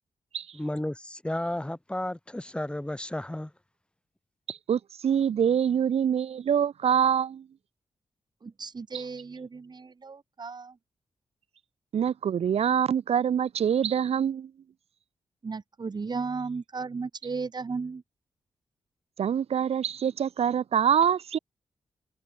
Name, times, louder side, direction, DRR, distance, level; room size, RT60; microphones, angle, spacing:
voice 1, 0.5-3.5, left 1 dB, 10° left, 3.7 m, -33 dB
voice 2, 4.5-7.5 8.9-9.0 11.9-14.5 19.2-21.4, right 8 dB, 80° right, 1.6 m, -25 dB
voice 3, 8.4-10.8 15.4-18.0, right 4 dB, 45° right, 2.3 m, -35 dB
cardioid pair, 90°, 10 cm